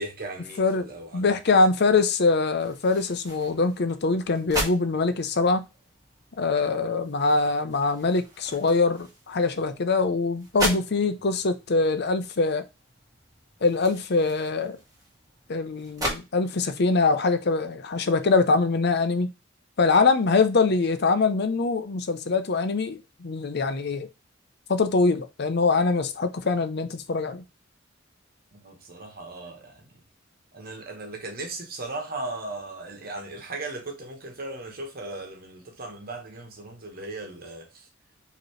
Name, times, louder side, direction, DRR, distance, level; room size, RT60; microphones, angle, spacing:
voice 1, 0.0-1.4 28.5-29.9 30.5-37.7, right 2 dB, 50° right, 1.3 m, -37 dB
voice 2, 0.6-5.6 6.4-12.6 13.6-14.8 15.5-19.3 19.8-24.1 24.7-27.4, left 3 dB, 55° left, 0.6 m, -23 dB
sound 1, 2.6-16.2, right 1 dB, 20° right, 1.7 m, -38 dB
5.0 x 3.1 x 3.1 m
head